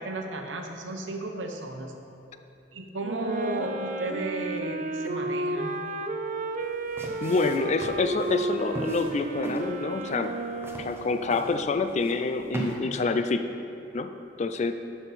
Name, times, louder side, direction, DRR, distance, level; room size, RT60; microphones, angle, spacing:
voice 1, 0.0-1.9 2.7-5.8, right 2 dB, 90° right, 3 dB, 0.9 m, -34 dB
Wind instrument woodwind instrument, 3.0-11.4, right 2 dB, 40° right, 0.5 m, -32 dB
sound 1, 6.6-12.8, right 1 dB, 15° right, 0.8 m, -40 dB
voice 2, 7.2-10.3 10.8-13.5 13.9-14.1 14.4-14.7, left 3 dB, 35° left, 9 dB, 0.4 m, -27 dB
11.5 x 5.8 x 4.1 m, 2.8 s
head